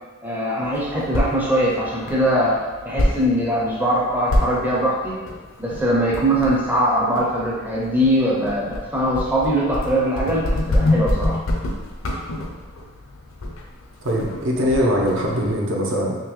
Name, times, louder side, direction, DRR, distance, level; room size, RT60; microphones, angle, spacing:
voice 1, 0.2-5.2 5.6-11.4, equal, 10° right, -5 dB, 0.5 m, -21 dB
sound 1, 0.6-15.5, left 1 dB, 65° left, 0.5 m, -27 dB
voice 2, 14.0-16.2, equal, 60° right, -2 dB, 0.6 m, -21 dB
3.6 x 3.0 x 3.0 m, 1.3 s
head